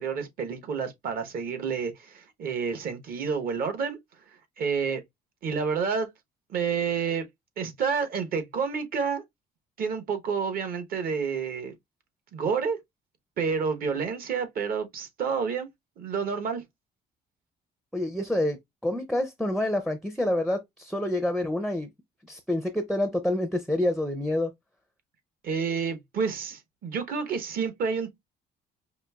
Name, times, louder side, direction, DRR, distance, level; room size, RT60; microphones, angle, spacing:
voice 1, 0.0-4.0 4.6-5.0 5.4-6.1 6.5-7.3 7.6-9.2 9.8-11.7 12.3-12.8 13.4-15.7 16.0-16.6 25.4-28.1, right 6 dB, 60° right, 1.0 m, -29 dB
voice 2, 17.9-18.6 18.8-21.9 22.3-24.5, left 1 dB, ahead, 0.4 m, -27 dB
5.1 x 2.4 x 2.3 m
cardioid pair, 110°, 17 cm